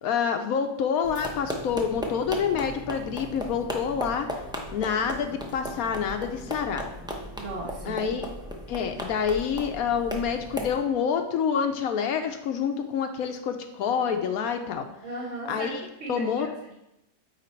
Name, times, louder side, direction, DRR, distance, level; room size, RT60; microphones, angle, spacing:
voice 1, 0.0-4.4 4.7-6.9 7.8-8.3 8.7-14.9 15.5-15.8 16.1-16.5, left 7 dB, 70° left, 7 dB, 1.0 m, -27 dB
sound 1, 1.0-10.8, equal, 5° right, 0.3 m, -36 dB
voice 2, 7.4-8.0 15.0-15.7 16.0-16.7, right 2 dB, 50° right, -6 dB, 1.8 m, -36 dB
9.1 x 3.2 x 4.3 m, 0.88 s
omnidirectional pair, 1.7 m